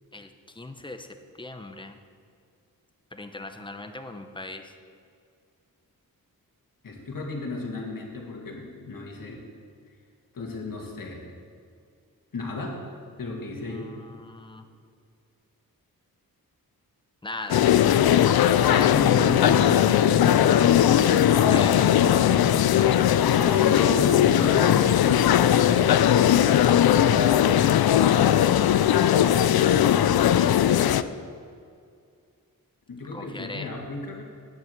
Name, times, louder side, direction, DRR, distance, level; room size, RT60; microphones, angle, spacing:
voice 1, 0.1-1.1 1.4-2.0 3.1-4.7 13.6-14.7 17.2-17.7 18.7-19.3 21.2-21.7 33.1-33.7, left 2 dB, 15° left, 6 dB, 0.9 m, -39 dB
voice 2, 6.8-9.4 10.3-11.2 12.3-12.8 13.2-13.9 18.7-20.5 20.9-21.6 23.3-26.5 32.9-34.2, left 2 dB, 65° left, 0 dB, 2.3 m, -33 dB
sound 1, 17.5-31.0, left 10 dB, 80° left, 0.5 m, -19 dB
9.3 x 8.1 x 7.5 m, 2.3 s
wide cardioid pair, 80°, 36 cm